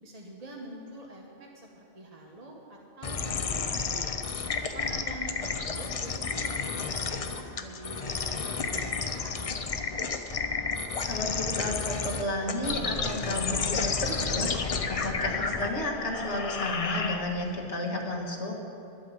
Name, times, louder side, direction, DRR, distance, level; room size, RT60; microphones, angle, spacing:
voice 1, 0.0-4.1 4.7-9.3, right 2 dB, 35° right, -1 dB, 1.1 m, -46 dB
sound 1, 3.0-17.6, left 4 dB, 40° left, 0.6 m, -31 dB
voice 2, 11.1-18.5, left 1 dB, 70° left, -1 dB, 2.0 m, -32 dB
12.0 x 8.4 x 7.7 m, 2.7 s
omnidirectional pair, 1.2 m